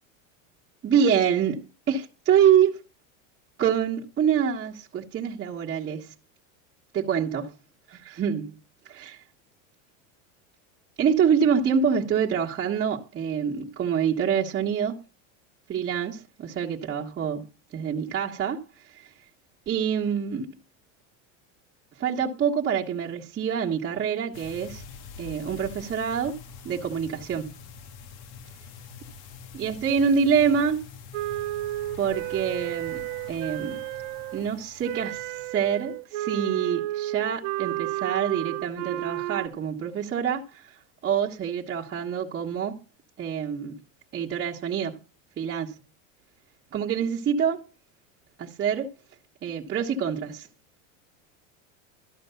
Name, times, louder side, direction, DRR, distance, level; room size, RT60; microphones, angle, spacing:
voice 1, 0.8-2.8 3.6-6.1 6.9-7.5 7.9-8.6 8.8-9.2 11.0-15.0 15.7-17.4 17.7-18.6 18.9-19.1 19.7-20.5 22.0-24.8 25.2-26.3 26.6-27.6 29.5-30.8 32.0-33.0 33.3-33.8 34.3-42.8 43.2-43.8 44.1-45.0 45.4-45.7 46.7-47.6 48.4-48.9 49.4-50.5, right 7 dB, 25° right, 1.5 m, -26 dB
sound 1, 24.3-36.0, left 6 dB, 50° left, 1.4 m, -45 dB
Wind instrument woodwind instrument, 31.1-34.4 34.8-39.5, right 16 dB, 70° right, 0.8 m, -32 dB
13.0 x 5.3 x 6.9 m
supercardioid pair, 135°, 39 cm